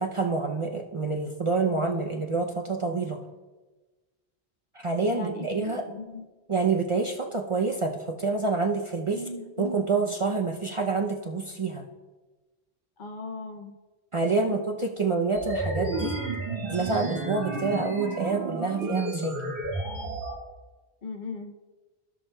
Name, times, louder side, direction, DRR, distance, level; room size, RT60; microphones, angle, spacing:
voice 1, 0.0-3.2 4.8-5.8 6.5-9.2 9.6-11.8 14.1-16.1 16.7-19.6, right 4 dB, 40° right, 1 dB, 0.5 m, -27 dB
voice 2, 5.1-6.2 9.1-9.9 13.0-13.7 14.3-14.6 21.0-21.5, left 3 dB, 55° left, 4 dB, 0.8 m, -38 dB
sound 1, 15.3-20.3, right 3 dB, 85° right, 2.3 m, -31 dB
15.5 x 5.8 x 2.2 m, 1.2 s
omnidirectional pair, 1.0 m